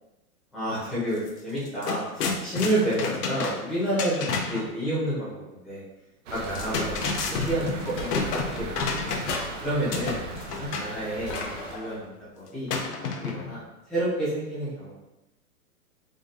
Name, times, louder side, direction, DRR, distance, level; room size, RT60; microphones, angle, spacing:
voice 1, 0.5-5.8 6.3-9.1 9.6-10.2 10.5-12.7 13.0-13.6 13.9-14.9, right 1 dB, ahead, -14 dB, 0.4 m, -30 dB
sound 1, 1.2-1.3 1.6-4.7 6.4-9.6 9.9-10.9 12.7-13.6, left 4 dB, 80° left, 0.8 m, -30 dB
sound 2, 6.3-11.8, right 3 dB, 55° right, 0.7 m, -38 dB
sound 3, 8.0-8.8 9.2-10.1 11.3-12.1, left 3 dB, 50° left, 0.8 m, -37 dB
4.0 x 3.8 x 2.4 m, 0.96 s
hypercardioid pair, 150°, 46 cm